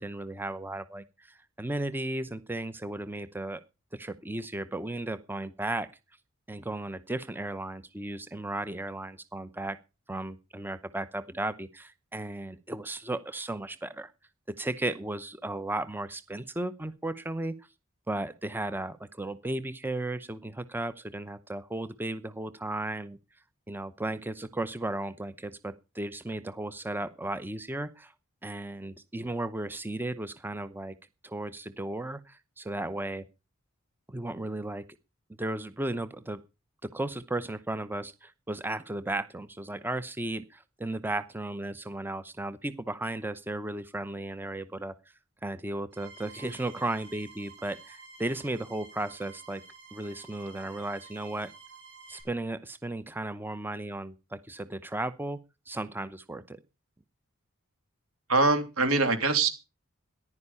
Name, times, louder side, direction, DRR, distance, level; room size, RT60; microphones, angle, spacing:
voice 1, 0.0-3.6 3.9-5.9 6.5-9.8 10.1-14.1 14.5-17.5 18.1-23.2 23.7-28.1 28.4-31.0 31.2-33.2 34.1-34.8 35.4-36.4 36.8-45.0 45.4-49.6 49.9-51.5 52.1-55.4 55.7-56.6, right 2 dB, 10° right, 13 dB, 0.7 m, -35 dB
sound 1, 45.9-52.2, right 5 dB, 55° right, 7.0 m, -51 dB
voice 2, 58.3-59.5, right 3 dB, 85° right, 8 dB, 3.0 m, -23 dB
14.5 x 11.0 x 5.5 m, 0.31 s
head